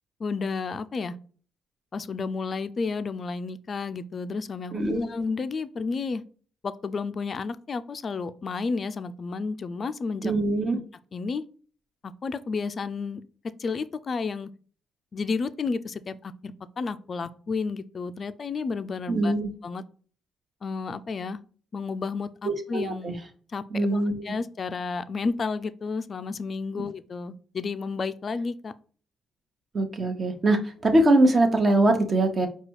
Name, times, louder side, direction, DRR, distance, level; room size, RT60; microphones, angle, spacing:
voice 1, 0.2-1.1 1.9-6.2 6.6-10.3 11.1-11.4 12.2-13.2 13.6-14.5 15.1-19.3 19.6-19.8 20.6-21.4 21.7-23.2 23.5-28.7, left 4 dB, 40° left, 11 dB, 0.3 m, -31 dB
voice 2, 10.2-10.8 19.1-19.5 22.4-23.2 23.7-24.3 29.7-32.5, right 2 dB, 35° right, 5 dB, 1.0 m, -22 dB
4.9 x 2.3 x 4.6 m, 0.42 s
cardioid pair, 90°, 0 cm